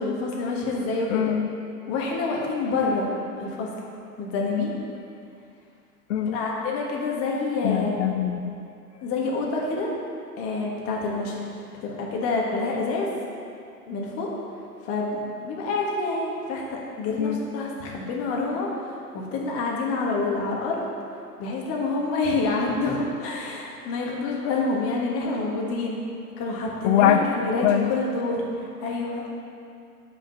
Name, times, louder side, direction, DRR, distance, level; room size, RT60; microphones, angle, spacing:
voice 1, 0.0-1.3 1.9-3.1 3.4-3.7 4.2-4.7 6.3-8.0 9.0-9.9 10.4-11.5 11.8-13.1 13.9-14.4 14.8-20.8 21.4-26.0 26.4-29.2, left 3 dB, 30° left, -2 dB, 1.4 m, -27 dB
voice 2, 1.1-1.5 4.5-4.7 6.1-6.4 7.6-8.5 17.2-17.4 26.8-27.2 27.6-27.9, left 10 dB, 55° left, 6 dB, 0.5 m, -22 dB
5.5 x 5.2 x 6.7 m, 2.5 s
figure-of-eight pair, 110°, 46 cm